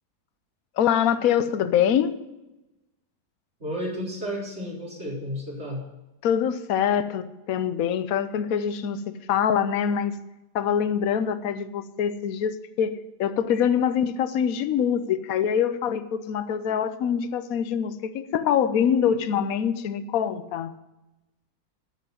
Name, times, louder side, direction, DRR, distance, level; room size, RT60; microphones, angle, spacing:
voice 1, 0.8-2.1 6.2-10.1 10.5-20.7, left 8 dB, 65° left, 12 dB, 1.2 m, -24 dB
voice 2, 3.6-5.8 19.0-19.1, equal, 40° right, -4 dB, 4.6 m, -32 dB
10.0 x 8.1 x 9.3 m, 0.98 s
omnidirectional pair, 1.7 m